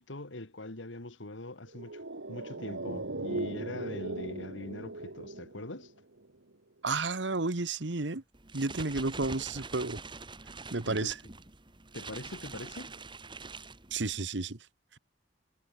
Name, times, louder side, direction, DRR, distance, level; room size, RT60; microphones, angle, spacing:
voice 1, 0.0-2.0 2.3-5.9 10.9-11.2 11.9-12.9, left 2 dB, 90° left, 2.3 m, -42 dB
sound 1, 1.7-6.3 6.5-6.6, right 2 dB, 85° right, 2.1 m, -39 dB
voice 2, 6.8-8.2 8.5-10.0 10.7-11.2 13.9-14.6, right 3 dB, 70° right, 1.4 m, -31 dB
sound 2, 8.3-14.3, right 4 dB, 25° right, 2.2 m, -45 dB
head